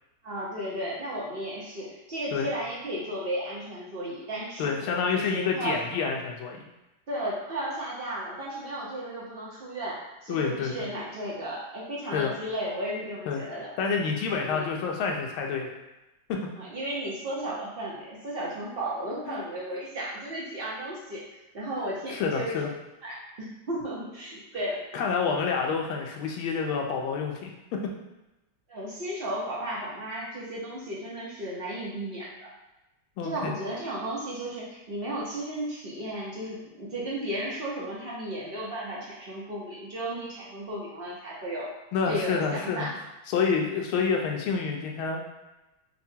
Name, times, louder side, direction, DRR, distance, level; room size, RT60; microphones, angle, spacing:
voice 1, 0.2-4.7 5.1-5.8 7.1-13.7 14.5-14.7 16.6-21.2 21.5-22.6 23.0-24.8 28.7-32.5 33.2-41.7 42.1-43.0, right 1 dB, 50° right, -6 dB, 0.6 m, -34 dB
voice 2, 4.6-6.6 10.3-10.9 12.1-12.3 13.3-13.4 13.8-15.7 16.3-16.4 19.3-19.4 22.1-22.7 24.9-27.8 33.2-33.5 41.9-42.9 43.3-45.3, left 5 dB, 85° left, 1 dB, 1.5 m, -28 dB
5.8 x 2.2 x 2.7 m, 0.99 s
omnidirectional pair, 2.2 m